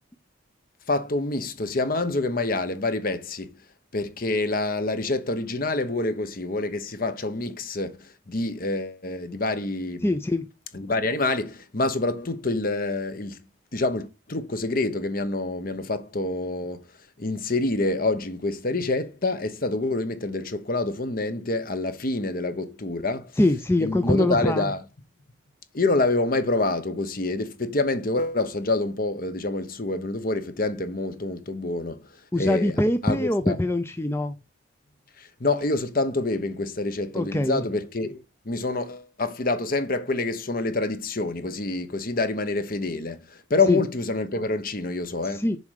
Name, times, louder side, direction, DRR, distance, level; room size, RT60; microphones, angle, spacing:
voice 1, 0.9-3.5 3.9-10.1 10.7-13.4 13.7-16.8 17.2-23.3 23.8-24.8 25.7-32.0 32.3-32.7 33.0-33.6 35.2-45.4, left 2 dB, 45° left, 1.0 m, -27 dB
voice 2, 10.0-10.5 23.4-24.7 32.3-34.3 37.1-37.6 43.7-43.8 45.2-45.6, left 1 dB, 10° left, 0.5 m, -23 dB
7.0 x 4.9 x 6.4 m
head